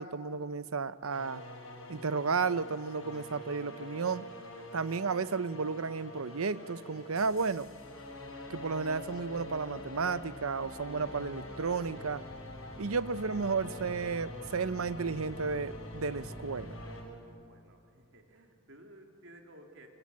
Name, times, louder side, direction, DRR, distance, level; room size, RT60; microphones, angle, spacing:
voice 1, 0.0-1.4 1.9-4.2 4.7-7.7 8.5-12.2 12.8-16.8, right 4 dB, 85° right, 15 dB, 0.8 m, -33 dB
sound 1, 1.1-17.0, left 1 dB, 80° left, 7.0 m, -45 dB
voice 2, 17.3-19.9, right 1 dB, 65° right, 3 dB, 3.3 m, -55 dB
26.5 x 25.5 x 8.6 m, 2.3 s
head